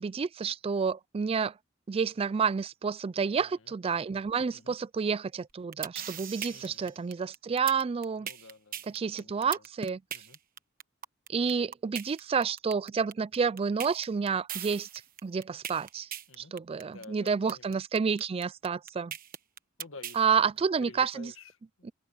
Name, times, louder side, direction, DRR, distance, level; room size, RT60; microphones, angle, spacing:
voice 1, 0.0-1.5 1.9-8.3 8.9-10.0 11.3-14.9 15.2-16.1 16.4-19.1 20.2-21.3 21.8-21.9, right 6 dB, 30° right, 0.3 m, -29 dB
voice 2, 3.3-3.7 4.5-4.8 6.5-6.9 8.2-9.7 10.1-10.4 16.3-16.5 16.9-17.8 19.8-20.5 20.8-21.9, left 3 dB, 75° left, 2.0 m, -51 dB
sound 1, 5.5-20.2, right 9 dB, 45° right, 1.2 m, -39 dB
open air
head